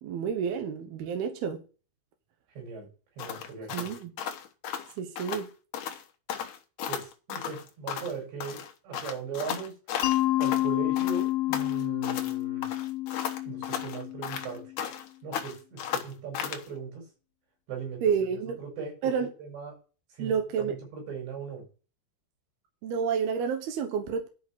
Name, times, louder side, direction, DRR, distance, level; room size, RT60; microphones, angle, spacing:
voice 1, 0.0-1.6 3.7-4.1 5.0-5.5 18.0-18.6 19.0-19.3 20.2-20.8 22.8-24.3, right 7 dB, 70° right, 3.0 m, -29 dB
voice 2, 2.6-2.9 3.2-3.9 6.9-9.7 10.4-12.7 13.5-14.6 15.2-17.0 17.7-18.0 18.6-19.7 20.1-21.6, right 5 dB, 85° right, 7.6 m, -39 dB
sound 1, 3.2-5.5 5.7-6.0 6.3-8.2 8.4-10.7 11.0-12.3 12.6-15.1 15.3-16.7, left 9 dB, 70° left, 2.0 m, -35 dB
Mallet percussion, 10.0-14.8, left 17 dB, 90° left, 3.0 m, -29 dB
11.0 x 5.8 x 6.1 m
omnidirectional pair, 4.9 m